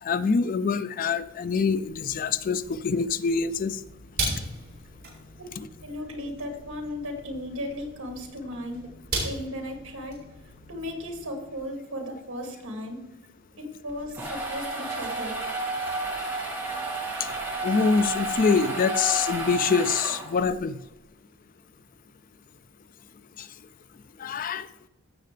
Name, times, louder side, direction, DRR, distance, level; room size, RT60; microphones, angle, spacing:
voice 1, 0.0-3.8 5.6-5.7 17.6-20.8 23.4-23.5 24.2-24.7, left 5 dB, 40° left, 13 dB, 0.3 m, -25 dB
sound 1, 1.2-11.6, right 2 dB, 45° right, 4.3 m, -38 dB
voice 2, 5.8-8.9 9.2-10.2 10.7-13.1 13.6-15.5, left 1 dB, 70° right, 3 dB, 2.2 m, -36 dB
sound 2, 13.9-20.6, right 2 dB, 10° right, 1.8 m, -31 dB
15.5 x 6.7 x 3.3 m, 0.93 s
head